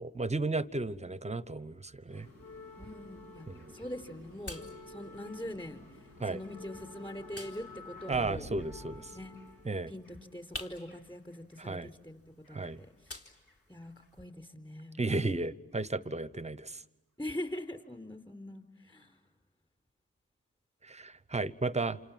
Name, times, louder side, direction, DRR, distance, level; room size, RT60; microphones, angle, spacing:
voice 1, 0.0-2.3 3.5-3.7 6.2-6.4 8.1-9.1 9.6-9.9 11.6-11.9 12.5-12.8 15.0-16.8 20.8-22.0, right 3 dB, 20° right, 0.9 m, -34 dB
sound 1, 2.1-11.6 12.4-13.6 13.8-14.0 15.0-15.1, left 2 dB, 65° left, 2.9 m, -50 dB
sound 2, 2.2-14.2, left 1 dB, 40° left, 3.3 m, -52 dB
voice 2, 2.8-3.5 3.7-5.8 6.3-8.5 9.1-9.4 9.9-12.2 12.5-12.7 13.0-13.2 13.7-15.4 17.2-19.2, left 1 dB, 15° left, 4.2 m, -43 dB
28.0 x 27.5 x 7.5 m
supercardioid pair, 45°, 35 cm